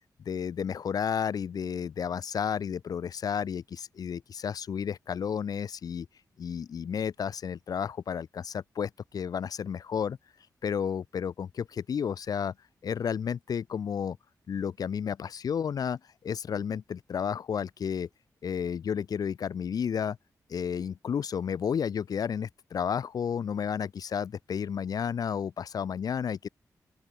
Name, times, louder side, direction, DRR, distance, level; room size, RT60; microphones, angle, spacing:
voice 1, 0.3-6.1 6.4-10.2 10.6-12.5 12.8-14.2 14.5-18.1 18.4-20.2 20.5-26.5, left 7 dB, 70° left, 2.5 m, -32 dB
open air
wide cardioid pair, 145°, 7 cm